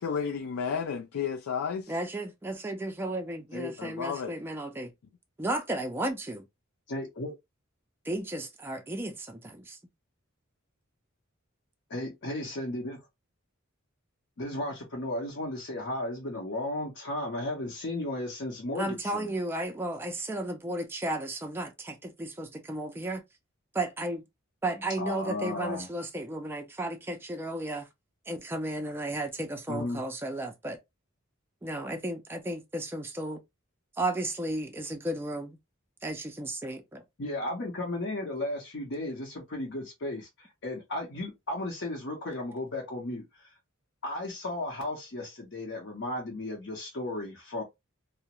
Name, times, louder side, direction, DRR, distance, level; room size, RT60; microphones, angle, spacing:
voice 1, 0.0-1.9 3.8-4.3, left 6 dB, 85° left, 0.4 m, -32 dB
voice 2, 1.9-4.9 5.4-6.5 8.0-9.8 18.8-23.2 23.7-24.2 24.6-27.9 28.3-30.8 31.6-33.4 34.0-35.6 36.0-37.0, right 1 dB, 10° right, 0.3 m, -34 dB
voice 3, 6.9-7.3 11.9-13.0 14.4-19.3 25.0-25.9 29.7-30.0 37.2-43.5 44.0-47.6, left 1 dB, 60° left, 0.7 m, -35 dB
2.4 x 2.0 x 2.8 m
head